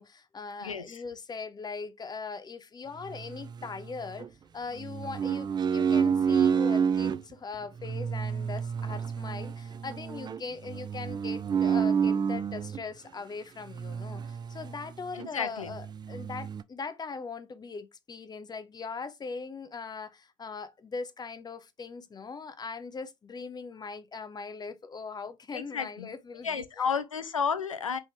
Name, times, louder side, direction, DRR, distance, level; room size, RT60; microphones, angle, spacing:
voice 1, 0.0-4.3 4.5-26.9, left 4 dB, 25° left, 0.7 m, -40 dB
voice 2, 0.6-1.0 15.1-15.7 25.5-26.1 26.4-28.0, left 6 dB, 90° left, 0.5 m, -32 dB
sound 1, 3.1-4.3 4.8-7.2 7.8-12.8 13.7-14.9 15.2-15.3 15.6-16.6, right 7 dB, 25° right, 0.4 m, -29 dB
4.1 x 3.6 x 3.3 m
figure-of-eight pair, 60°, 16 cm